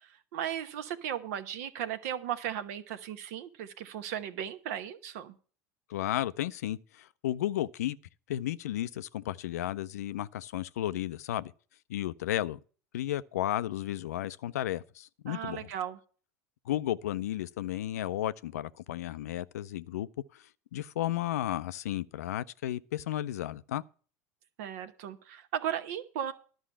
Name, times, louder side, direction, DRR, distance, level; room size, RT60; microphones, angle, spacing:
voice 1, 0.0-5.3 15.3-16.0 24.6-26.3, right 10 dB, 75° right, 1.0 m, -36 dB
voice 2, 5.9-8.0 8.3-11.5 11.9-12.6 12.9-15.7 16.7-20.4 20.7-23.8, left 13 dB, 85° left, 0.4 m, -33 dB
11.5 x 5.6 x 7.2 m
hypercardioid pair, 85°, 8 cm